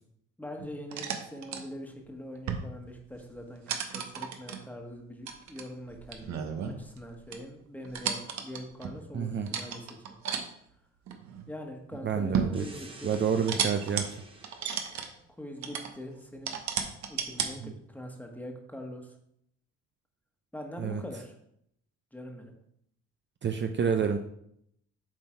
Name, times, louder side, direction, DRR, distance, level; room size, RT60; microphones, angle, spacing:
voice 1, 0.4-10.2 11.5-13.2 15.4-16.6 17.1-19.1 20.5-21.3 22.1-22.5, left 1 dB, 5° left, 2 dB, 1.4 m, -43 dB
sound 1, 0.6-1.6 2.4-2.8 3.1-3.3 3.7-4.6 5.3-7.0 7.3-7.4 7.8-9.0 9.5-10.4 11.1-11.5 12.0-12.6 13.1-14.0 14.4-15.1 15.6-15.9 16.5-17.5, right 7 dB, 65° right, 1.0 m, -33 dB
voice 2, 9.1-9.5 12.0-12.6 13.0-14.1 17.6-17.7 20.8-21.0 23.4-24.2, right 7 dB, 40° right, 6 dB, 0.5 m, -28 dB
sound 2, 12.5-15.0, right 2 dB, 15° right, 1.2 m, -50 dB
7.6 x 3.9 x 4.4 m, 0.73 s
cardioid pair, 90°, 30 cm